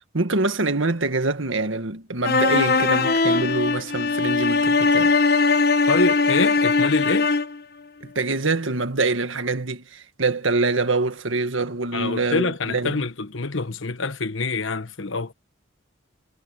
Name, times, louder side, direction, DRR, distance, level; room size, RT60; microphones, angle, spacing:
voice 1, 0.1-5.1 8.0-13.0, right 3 dB, 80° right, 1.8 m, -25 dB
sound 1, 2.2-7.6, left 4 dB, 50° left, 1.2 m, -20 dB
voice 2, 5.9-7.3 11.9-15.3, left 3 dB, 80° left, 1.3 m, -26 dB
head